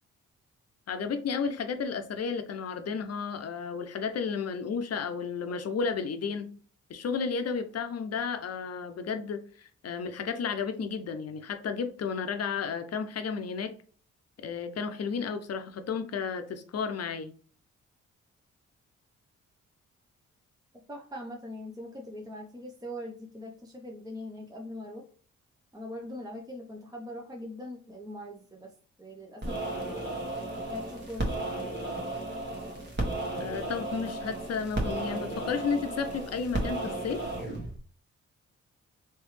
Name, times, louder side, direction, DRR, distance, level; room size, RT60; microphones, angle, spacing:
voice 1, 0.9-6.5 6.9-13.7 14.4-17.3 33.4-37.2, left 5 dB, 55° left, 8 dB, 0.7 m, -32 dB
voice 2, 20.9-25.0 25.7-28.7 29.0-30.2 30.6-31.8, left 1 dB, 10° right, 0 dB, 0.8 m, -42 dB
sound 1, 29.4-37.8, right 1 dB, 35° right, 1.3 m, -34 dB
3.2 x 3.2 x 3.1 m, 0.42 s
supercardioid pair, 50°, 30 cm